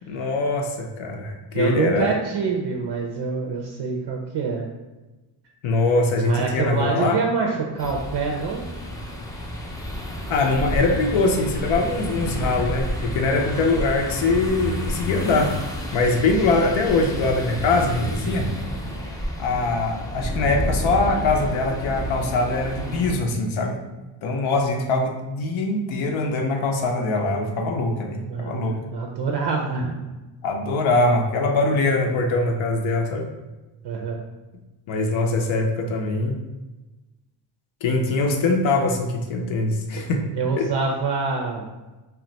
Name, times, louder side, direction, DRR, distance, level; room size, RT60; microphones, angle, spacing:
voice 1, 0.0-2.1 5.6-7.2 10.3-15.5 15.9-18.5 19.4-23.8 24.2-28.8 30.4-33.3 34.9-36.4 37.8-40.2 40.6-40.7, left 3 dB, 70° left, 2 dB, 0.6 m, -22 dB
voice 2, 1.5-4.7 6.2-8.6 28.2-30.1 33.8-34.2 40.0-41.7, right 4 dB, 55° right, 0 dB, 0.5 m, -26 dB
sound 1, 7.8-23.1, equal, 10° left, 0.4 m, -30 dB
2.2 x 2.1 x 3.8 m, 1.1 s
cardioid pair, 85°, 49 cm